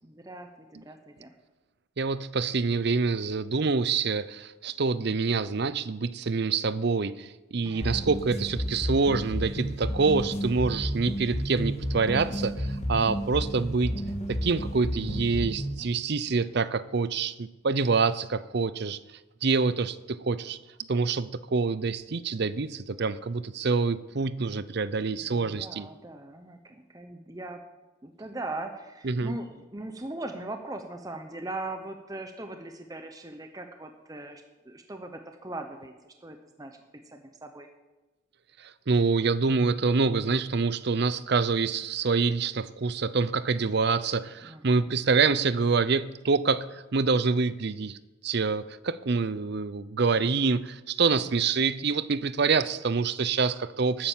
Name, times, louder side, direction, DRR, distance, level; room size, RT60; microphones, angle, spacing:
voice 1, 0.0-1.3 7.6-8.1 16.3-16.6 25.1-27.6 28.0-36.8 37.0-37.7 44.4-44.9, right 2 dB, 15° right, 5 dB, 0.9 m, -40 dB
voice 2, 2.0-14.0 14.3-19.0 19.4-20.6 20.9-25.9 29.0-29.3 38.6-48.0 48.2-54.1, right 4 dB, 50° right, 16 dB, 0.6 m, -26 dB
sound 1, 7.8-15.8, equal, 30° left, 1.6 m, -32 dB
13.0 x 9.7 x 7.4 m, 1.1 s
head